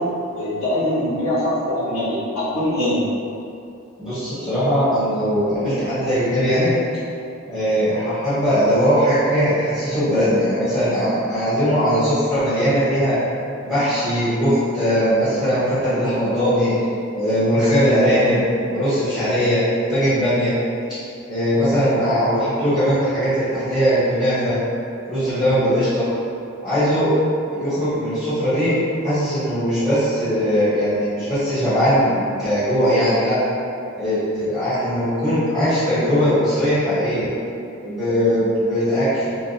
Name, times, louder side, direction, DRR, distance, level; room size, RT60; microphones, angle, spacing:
voice 1, 0.0-3.0, left 1 dB, 70° left, -10 dB, 1.4 m, -23 dB
voice 2, 4.0-6.7 7.5-13.2 13.6-16.7 17.1-18.4 18.7-19.6 19.9-20.5 21.3-24.6 25.1-26.0 26.6-27.1 27.5-28.7 29.0-33.4 34.0-37.3 37.8-39.3, equal, 25° left, -16 dB, 1.5 m, -20 dB
3.7 x 3.3 x 2.8 m, 2.5 s
head